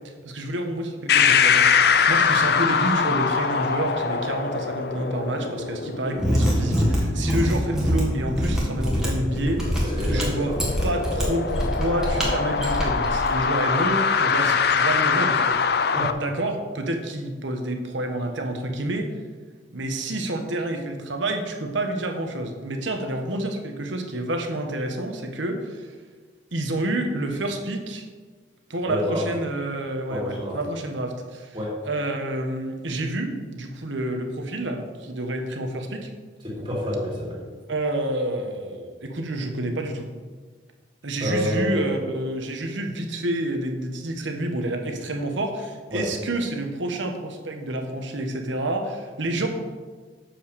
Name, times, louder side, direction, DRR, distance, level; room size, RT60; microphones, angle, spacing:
voice 1, 0.2-9.8 10.1-10.5 10.8-15.9 16.2-19.1 19.7-25.9 26.5-28.0 28.7-31.6 31.8-36.1 37.7-40.1 41.0-49.5, right 1 dB, 75° right, 4 dB, 1.2 m, -28 dB
sound 1, 1.1-16.1, left 6 dB, 55° left, 0.4 m, -24 dB
Mechanisms, 6.1-13.3, equal, 5° right, 1.6 m, -25 dB
voice 2, 9.8-10.7 15.8-16.2 28.9-29.2 30.1-30.6 31.5-31.8 36.4-37.4 41.2-42.1 45.9-46.0, left 1 dB, 25° right, -5 dB, 2.8 m, -28 dB
7.2 x 5.8 x 6.8 m, 1.5 s
head